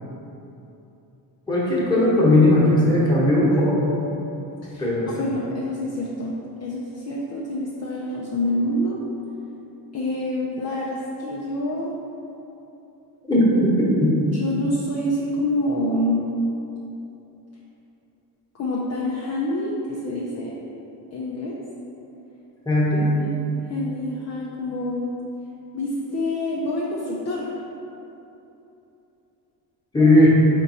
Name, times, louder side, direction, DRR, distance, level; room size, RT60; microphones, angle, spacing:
voice 1, 1.5-3.9 4.8-5.3 13.3-13.7 14.0-14.1 22.6-23.1 29.9-30.3, left 1 dB, 10° left, -8 dB, 1.2 m, -17 dB
voice 2, 5.2-9.0 9.9-12.0 14.3-16.2 18.5-20.5 21.1-21.6 23.2-23.3 23.7-25.1 25.7-27.5 30.0-30.2, left 1 dB, 35° left, -4 dB, 0.5 m, -27 dB
3.9 x 2.6 x 4.0 m, 3.0 s
cardioid pair, 85°, 45 cm